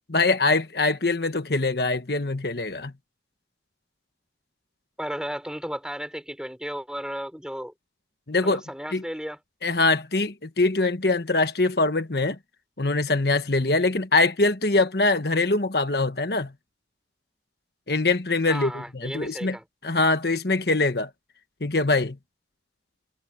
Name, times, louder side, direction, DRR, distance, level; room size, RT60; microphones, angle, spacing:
voice 1, 0.1-2.9 8.3-8.6 8.9-9.0 9.6-12.4 12.8-16.5 17.9-19.6 19.8-21.1 21.6-22.2, left 3 dB, 55° left, 1.4 m, -23 dB
voice 2, 5.0-7.7 8.4-9.4 18.5-19.6, equal, 5° right, 5.3 m, -34 dB
head